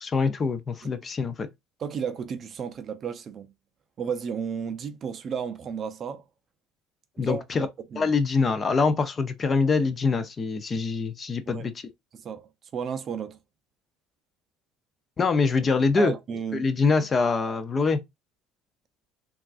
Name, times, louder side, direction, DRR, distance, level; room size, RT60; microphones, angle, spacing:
voice 1, 0.0-1.5 7.2-7.7 8.0-11.7 15.2-16.1 16.5-18.0, left 4 dB, 25° left, 0.4 m, -24 dB
voice 2, 1.8-3.5 4.0-6.3 7.2-8.1 11.5-11.7 12.1-13.4 16.0-16.7, right 7 dB, 35° right, 0.4 m, -33 dB
3.5 x 2.3 x 2.3 m
cardioid pair, 135°, 0 cm